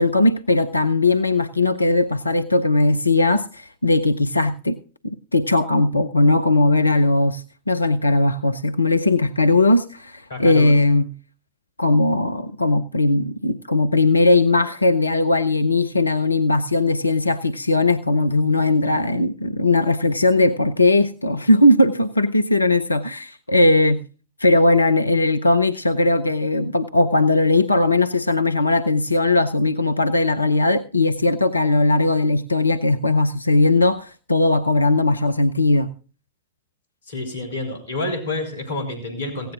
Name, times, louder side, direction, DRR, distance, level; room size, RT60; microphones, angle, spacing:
voice 1, 0.0-4.8 5.3-11.1 11.8-24.0 24.4-35.9, left 2 dB, 80° left, 12 dB, 0.6 m, -18 dB
voice 2, 10.3-10.7 37.1-39.5, left 2 dB, 65° left, 5 dB, 3.3 m, -28 dB
17.0 x 16.5 x 2.5 m, 0.37 s
figure-of-eight pair, 90°, 0 cm